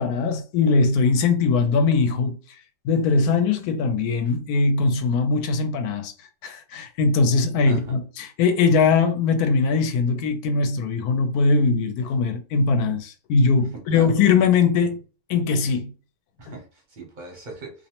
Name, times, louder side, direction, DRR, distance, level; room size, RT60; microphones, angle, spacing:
voice 1, 0.0-2.4 2.8-6.1 6.4-15.0 15.3-15.9, left 4 dB, 75° left, 1.0 m, -21 dB
voice 2, 7.6-8.0 13.6-14.1 16.4-17.9, right 3 dB, 45° right, 0.7 m, -39 dB
2.6 x 2.0 x 2.8 m
omnidirectional pair, 1.7 m